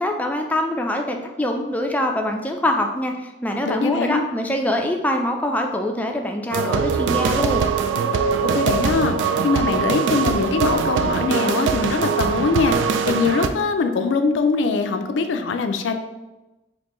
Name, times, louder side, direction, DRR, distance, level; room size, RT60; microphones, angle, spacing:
voice 1, 0.0-7.7, left 1 dB, 10° left, 3 dB, 0.3 m, -24 dB
voice 2, 3.7-4.2 8.5-16.0, left 4 dB, 85° left, 7 dB, 0.4 m, -22 dB
sound 1, 6.5-13.5, right 5 dB, 85° right, 0.3 m, -22 dB
4.3 x 2.9 x 3.0 m, 1.1 s
head